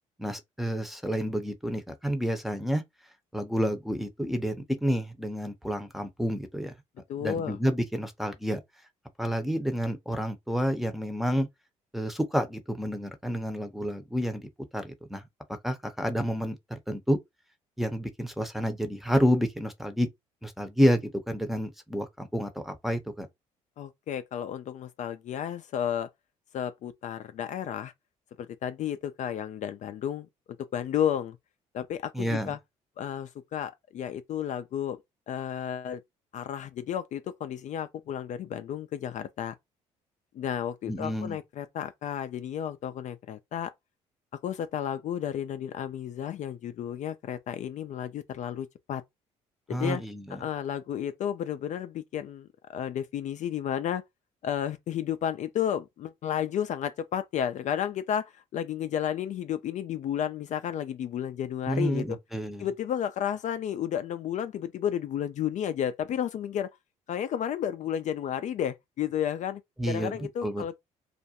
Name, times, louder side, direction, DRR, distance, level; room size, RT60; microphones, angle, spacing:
voice 1, 0.2-2.8 3.3-6.7 7.2-8.6 9.2-11.5 11.9-15.2 15.5-17.2 17.8-20.1 20.4-23.3 32.1-32.5 40.9-41.4 49.7-50.4 61.7-62.7 69.8-70.8, equal, ahead, 0.7 m, -29 dB
voice 2, 7.1-7.6 23.8-26.1 26.5-27.9 28.4-30.3 30.7-31.4 31.7-32.6 33.0-35.0 35.3-36.0 36.3-39.6 40.3-43.7 44.4-49.0 49.7-50.0 50.3-54.0 54.4-62.2 62.6-66.7 67.1-69.6 69.9-70.8, left 9 dB, 55° left, 0.4 m, -32 dB
2.4 x 2.1 x 2.8 m
supercardioid pair, 60°, 15 cm